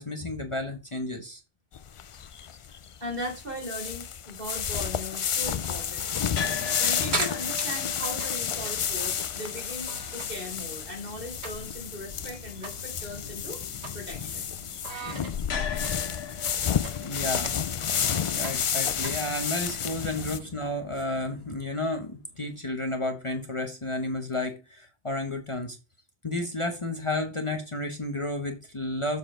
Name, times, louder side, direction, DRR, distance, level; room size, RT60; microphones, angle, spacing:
voice 1, 0.0-1.4 17.0-17.5 18.3-25.8 26.2-29.2, left 2 dB, 30° left, 1.0 m, -32 dB
sound 1, 1.7-20.4, left 8 dB, 60° left, 0.3 m, -31 dB
voice 2, 2.7-6.1 6.8-13.6 13.9-14.5, equal, 55° right, 4.1 m, -38 dB
sound 2, 6.0-10.5 10.8-11.9 12.2-12.3 12.6-12.8 13.2-14.4 14.8-19.6, right 3 dB, 80° right, 1.9 m, -38 dB
sound 3, 6.3-22.5, left 6 dB, 75° left, 1.1 m, -42 dB
7.3 x 4.1 x 5.0 m
omnidirectional pair, 1.1 m